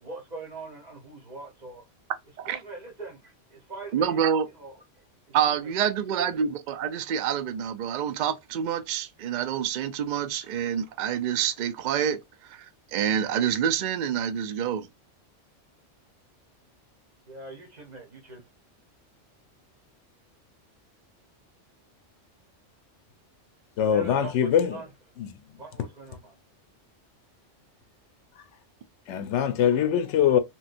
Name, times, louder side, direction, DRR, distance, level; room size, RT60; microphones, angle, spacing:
voice 1, 0.0-1.8 2.5-4.2 4.6-4.7 5.5-5.7 6.2-6.3 17.3-18.4 23.9-24.8 25.6-26.3, right 3 dB, 40° right, 0.8 m, -42 dB
voice 2, 3.9-4.5 5.3-12.2 12.5-14.9, right 8 dB, 60° right, 0.5 m, -27 dB
voice 3, 23.8-24.8 25.2-25.3 29.1-30.4, left 9 dB, 75° left, 0.9 m, -23 dB
3.0 x 3.0 x 2.4 m
omnidirectional pair, 1.3 m